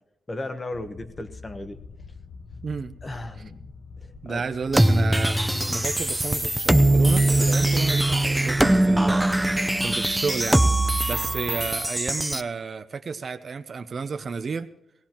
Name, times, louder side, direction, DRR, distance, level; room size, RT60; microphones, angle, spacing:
voice 1, 0.3-1.8 3.0-3.7 4.0-4.4, left 2 dB, 30° left, 8 dB, 1.1 m, -36 dB
sound 1, 0.7-11.7, left 4 dB, 55° left, 1.2 m, -45 dB
voice 2, 2.6-2.9 4.2-5.4 5.7-10.7 11.1-14.7, right 5 dB, 55° right, 11 dB, 0.6 m, -31 dB
sound 2, 4.7-12.4, right 1 dB, 5° right, 0.6 m, -21 dB
19.0 x 17.5 x 3.0 m, 0.85 s
cardioid pair, 95°, 0 cm